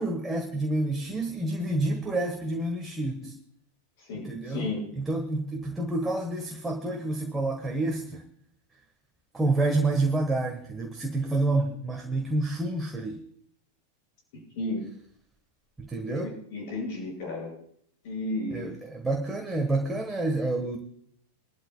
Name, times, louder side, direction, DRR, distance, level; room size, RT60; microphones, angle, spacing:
voice 1, 0.0-3.3 4.1-4.7 5.0-8.2 9.3-13.2 15.8-16.3 18.5-20.8, right 2 dB, 10° right, 2 dB, 1.5 m, -28 dB
voice 2, 4.0-4.8 14.5-14.9 16.1-17.5 18.0-18.7, left 2 dB, 50° left, -1 dB, 6.4 m, -33 dB
23.5 x 12.0 x 2.3 m, 0.65 s
figure-of-eight pair, 90°, 0 cm